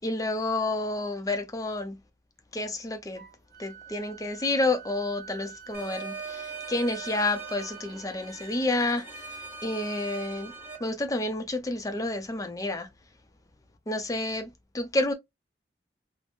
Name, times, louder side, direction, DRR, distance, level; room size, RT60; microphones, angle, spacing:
voice 1, 0.0-2.0 2.5-3.2 3.6-10.5 10.8-12.9 13.9-15.1, left 2 dB, 20° left, 0.5 m, -30 dB
Wind instrument woodwind instrument, 3.2-10.9, right 8 dB, 55° right, 0.7 m, -47 dB
sound 1, 5.7-10.8, right 3 dB, 15° right, 0.7 m, -41 dB
3.3 x 2.0 x 2.5 m
head